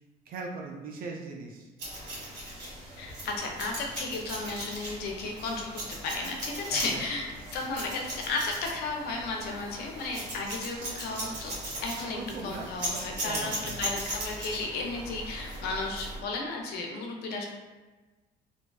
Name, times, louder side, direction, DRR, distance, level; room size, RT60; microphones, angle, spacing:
voice 1, 0.3-1.7 6.7-7.1 12.1-13.9, right 4 dB, 60° right, 1 dB, 0.4 m, -40 dB
sound 1, 1.8-16.2, right 1 dB, 80° right, 1.4 m, -39 dB
voice 2, 3.0-7.3 7.5-11.5 11.8-17.5, left 3 dB, 70° left, 1 dB, 0.5 m, -34 dB
2.5 x 2.2 x 2.3 m, 1.2 s
cardioid pair, 110°, 17 cm